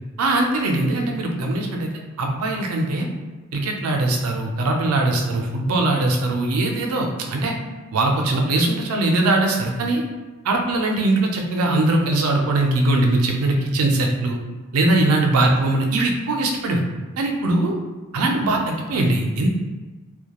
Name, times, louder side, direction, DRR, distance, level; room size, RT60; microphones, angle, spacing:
voice 1, 0.2-1.9 2.2-3.1 3.5-7.5 7.9-10.0 10.4-14.4 14.7-16.8 17.2-17.8 18.1-19.5, right 2 dB, 85° right, 2 dB, 0.4 m, -21 dB
2.2 x 2.1 x 2.9 m, 1.2 s
head